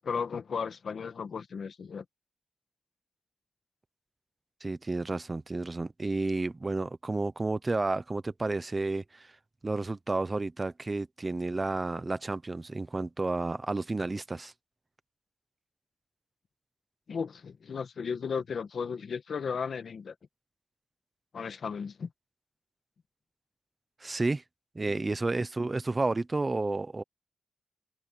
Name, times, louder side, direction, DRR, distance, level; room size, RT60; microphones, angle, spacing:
voice 1, 0.0-2.0 17.1-20.1 21.3-22.1, left 6 dB, 60° left, 1.5 m, -35 dB
voice 2, 4.6-9.3 9.6-14.5 24.0-24.4 24.7-27.0, right 3 dB, 20° right, 0.7 m, -31 dB
wide cardioid pair, 170°, 0 cm